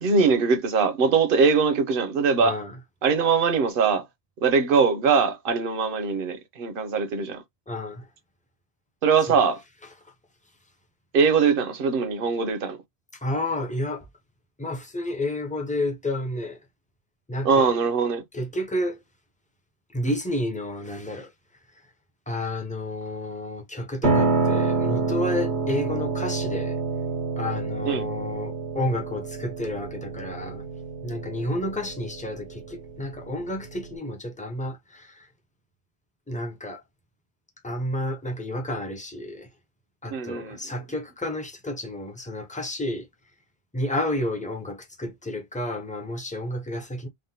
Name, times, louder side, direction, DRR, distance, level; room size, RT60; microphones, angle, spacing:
voice 1, 0.0-2.6 3.0-4.1 4.4-7.4 9.0-9.6 11.1-12.8 17.4-18.2 27.9-28.0 40.1-40.6, right 5 dB, 60° right, 0.8 m, -22 dB
voice 2, 2.4-2.8 7.7-8.1 9.3-9.4 13.1-14.1 14.6-16.6 17.3-17.7 18.3-19.0 19.9-21.3 22.3-26.8 27.4-30.7 31.0-35.3 36.3-36.8 37.6-39.5 40.0-43.1 43.7-47.1, left 1 dB, 10° left, 0.4 m, -30 dB
Piano, 24.0-34.0, right 4 dB, 80° right, 1.1 m, -28 dB
3.5 x 2.1 x 2.7 m
omnidirectional pair, 1.1 m